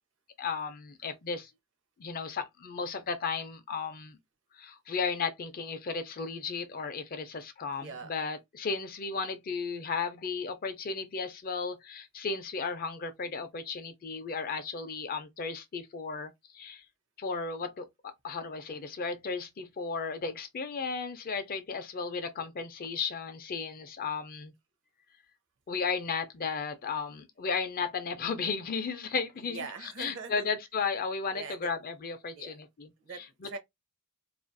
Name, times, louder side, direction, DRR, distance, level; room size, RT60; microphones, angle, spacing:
voice 1, 0.4-1.5 2.0-4.2 4.5-16.8 17.2-17.9 18.2-24.5 25.7-33.5, left 5 dB, 40° left, 0.4 m, -35 dB
voice 2, 7.8-8.1 29.5-30.5 31.3-31.7 32.4-32.6 33.0-33.6, right 4 dB, 60° right, 0.6 m, -42 dB
2.4 x 2.2 x 2.5 m
head